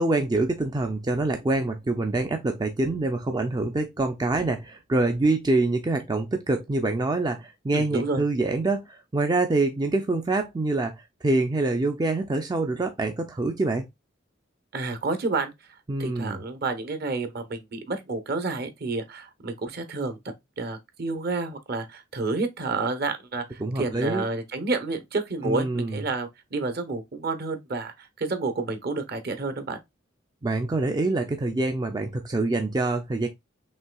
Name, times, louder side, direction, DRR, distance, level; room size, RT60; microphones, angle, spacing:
voice 1, 0.0-13.9 15.9-16.4 23.6-24.2 25.4-26.0 30.4-33.3, right 2 dB, 20° right, 0.4 m, -25 dB
voice 2, 7.7-8.2 14.7-15.5 16.0-20.2 20.6-29.8, right 3 dB, 55° right, 0.9 m, -30 dB
5.4 x 3.2 x 2.3 m
head